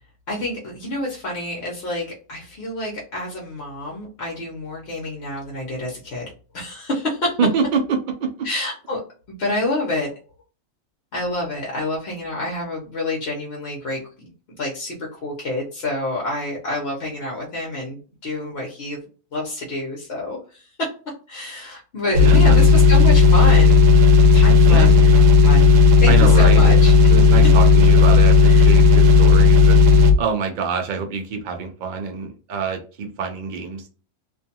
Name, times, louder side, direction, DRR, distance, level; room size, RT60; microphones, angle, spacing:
voice 1, 0.3-7.4 8.4-9.0 9.4-10.1 11.1-14.3 14.6-19.0 19.3-20.9 21.3-23.9 24.3-25.7 26.0-27.1 28.5-28.7, left 1 dB, 55° left, -2 dB, 1.0 m, -28 dB
voice 2, 7.4-8.3 22.2-22.6 24.7-25.0 26.1-26.7 27.1-29.8 30.2-33.9, right 5 dB, 90° right, 4 dB, 0.4 m, -25 dB
sound 1, 22.1-30.2, left 5 dB, 75° right, 0.9 m, -12 dB
2.5 x 2.3 x 2.7 m, 0.37 s
omnidirectional pair, 1.4 m